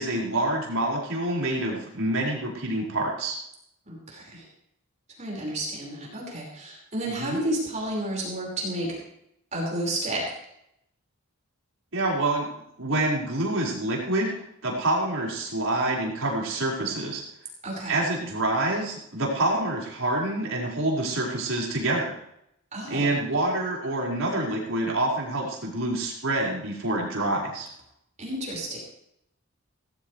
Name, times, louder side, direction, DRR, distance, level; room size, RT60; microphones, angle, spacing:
voice 1, 0.0-3.4 7.2-7.4 11.9-12.5 12.8-17.2 17.9-22.1 22.9-27.7, right 2 dB, 65° right, -3 dB, 5.5 m, -27 dB
voice 2, 3.9-4.5 5.2-9.0 9.5-10.4 17.6-18.0 22.7-23.2 28.2-28.8, right 1 dB, 30° right, -3 dB, 5.4 m, -31 dB
19.0 x 14.5 x 3.4 m, 0.76 s
head